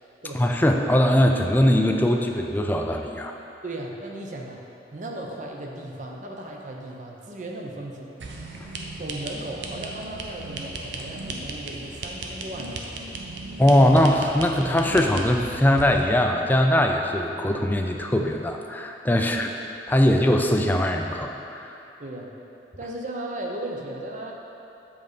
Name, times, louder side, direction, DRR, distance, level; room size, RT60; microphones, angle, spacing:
voice 1, 0.3-3.3 8.6-8.7 13.6-19.5 19.9-21.7, left 1 dB, 10° left, 3 dB, 0.3 m, -21 dB
voice 2, 3.6-4.6 4.9-8.1 9.0-13.0 19.2-19.3 20.1-20.3 22.0-22.3 22.8-24.3, right 1 dB, 45° right, 0 dB, 0.7 m, -36 dB
sound 1, 8.2-16.1, right 2 dB, 85° right, 0.7 m, -36 dB
7.5 x 4.0 x 5.1 m, 2.9 s
head